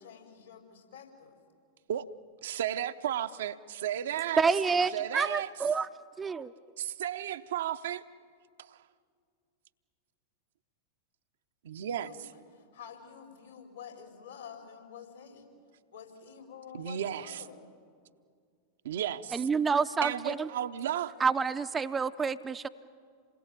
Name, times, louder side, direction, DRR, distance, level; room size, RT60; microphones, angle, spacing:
voice 1, 0.0-1.4 11.9-15.5 15.9-17.7, left 7 dB, 70° left, 4.4 m, -49 dB
voice 2, 2.4-4.4 4.9-5.5 6.8-8.0 8.6-8.8 11.6-12.1 16.7-17.4 18.8-19.5 20.0-21.1, right 10 dB, 60° right, 0.8 m, -34 dB
voice 3, 4.4-5.9 6.2-6.5 19.3-20.5 21.2-22.7, right 5 dB, 15° right, 0.6 m, -28 dB
28.0 x 21.0 x 9.0 m
figure-of-eight pair, 90°, 0 cm